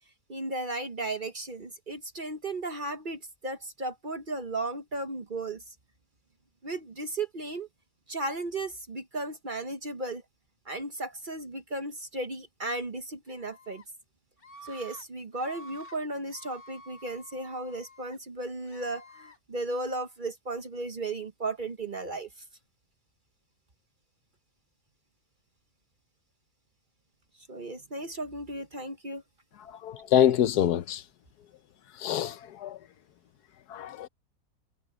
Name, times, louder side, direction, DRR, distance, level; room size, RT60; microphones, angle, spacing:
voice 1, 0.3-5.7 6.6-7.7 8.1-10.2 10.7-13.8 14.6-22.3 27.5-29.2, right 2 dB, 35° right, 1.1 m, -35 dB
Screaming, 13.3-13.9 14.4-15.0 15.3-16.0 16.3-18.2 18.7-19.4, equal, 35° left, 2.7 m, -50 dB
voice 2, 29.8-31.0 32.0-32.8 33.7-34.1, left 10 dB, 75° left, 1.2 m, -25 dB
omnidirectional pair, 1.7 m